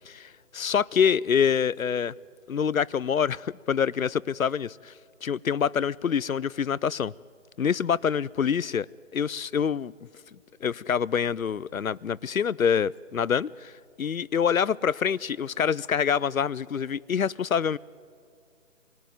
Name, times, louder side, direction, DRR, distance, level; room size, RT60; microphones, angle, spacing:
voice 1, 0.1-2.1 2.5-4.9 5.2-7.1 7.6-8.9 9.1-9.9 10.6-13.7 14.0-17.8, left 7 dB, 85° left, 0.6 m, -26 dB
27.0 x 18.5 x 9.3 m
figure-of-eight pair, 145°, 40 cm